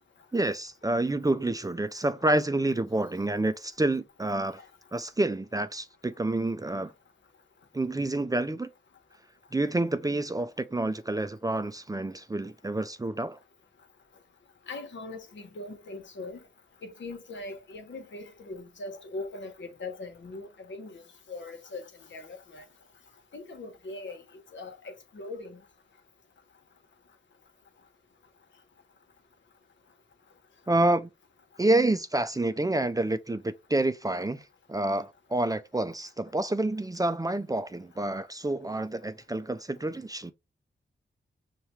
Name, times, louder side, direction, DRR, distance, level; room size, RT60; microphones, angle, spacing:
voice 1, 0.3-4.6 4.9-6.9 7.7-8.7 9.5-13.4 30.7-31.1 31.6-34.4 34.7-40.3, right 2 dB, 20° right, 0.4 m, -28 dB
voice 2, 14.7-16.4 16.8-21.0 21.3-22.6 23.3-24.2 24.5-25.6, left 2 dB, 75° left, 1.0 m, -41 dB
5.6 x 2.2 x 3.0 m
cardioid pair, 45°, 19 cm